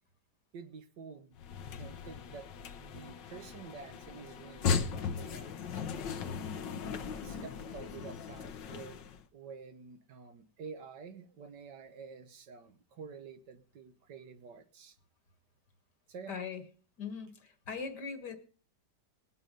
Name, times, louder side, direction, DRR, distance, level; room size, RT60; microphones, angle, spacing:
voice 1, 0.5-1.4 1.8-6.0 7.0-9.0 9.3-15.0 16.1-16.4, right 5 dB, 75° right, 9 dB, 1.8 m, -49 dB
sound 1, 1.3-9.2, left 6 dB, 85° left, 1.7 m, -37 dB
voice 2, 16.3-16.6 17.0-18.4, left 5 dB, 70° left, 8 dB, 2.3 m, -40 dB
20.0 x 8.0 x 5.3 m, 0.42 s
omnidirectional pair, 1.9 m